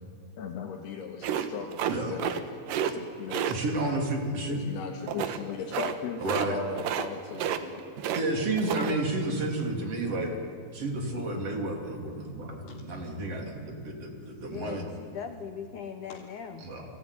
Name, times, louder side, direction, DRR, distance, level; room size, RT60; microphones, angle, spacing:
voice 1, 0.4-2.5 2.9-3.5 4.4-7.8 12.7-12.8 16.1-16.2, left 7 dB, 65° left, 1 dB, 3.3 m, -38 dB
sound 1, 1.2-2.4 2.7-2.9 3.3-3.6 5.1-5.4 5.7-5.9 6.2-6.5 6.8-7.1 7.3-8.2 8.5-8.9, right 9 dB, 65° right, 2.3 m, -30 dB
voice 2, 1.9-2.2 3.5-4.7 6.2-6.6 8.1-10.4 10.7-14.8 16.6-16.8, right 2 dB, 40° right, 3 dB, 3.3 m, -31 dB
voice 3, 14.5-16.7, left 7 dB, 90° left, 8 dB, 1.7 m, -39 dB
30.0 x 20.5 x 9.8 m, 2.4 s
omnidirectional pair, 5.3 m